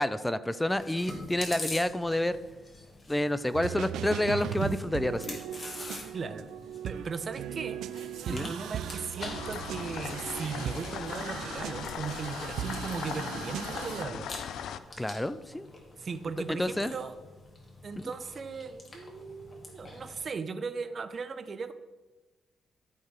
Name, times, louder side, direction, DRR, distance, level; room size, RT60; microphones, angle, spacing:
voice 1, 0.0-2.4 3.1-5.4 8.3-8.5 15.0-15.7 16.6-16.9, left 1 dB, 10° left, 14 dB, 0.4 m, -29 dB
Chewing mastication, 0.7-20.2, left 2 dB, 35° left, 2.0 m, -46 dB
sound 1, 3.5-14.1, right 10 dB, 90° right, 0.3 m, -38 dB
voice 2, 6.1-6.5 6.8-7.8 8.3-14.3 16.0-17.2 17.8-21.7, right 5 dB, 40° right, 11 dB, 0.6 m, -37 dB
sound 2, 9.2-14.8, left 8 dB, 80° left, 0.4 m, -39 dB
13.0 x 4.7 x 4.7 m, 1.2 s
cardioid pair, 115°, 0 cm